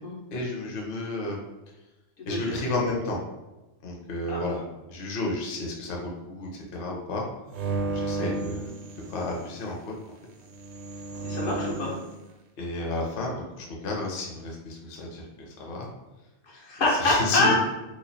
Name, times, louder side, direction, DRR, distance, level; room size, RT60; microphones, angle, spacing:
voice 1, 0.3-1.4 2.3-3.2 3.8-4.6 4.9-7.2 7.9-8.8 9.1-9.9 12.6-15.2 15.6-15.9 16.9-17.5, left 2 dB, 50° left, -1 dB, 0.8 m, -31 dB
sound 1, 7.5-9.5 10.5-12.0, right 3 dB, 65° right, 0.8 m, -32 dB
voice 2, 11.2-12.0 16.5-17.5, left 2 dB, 80° left, -4 dB, 1.4 m, -26 dB
3.0 x 2.3 x 4.0 m, 1.1 s
omnidirectional pair, 1.4 m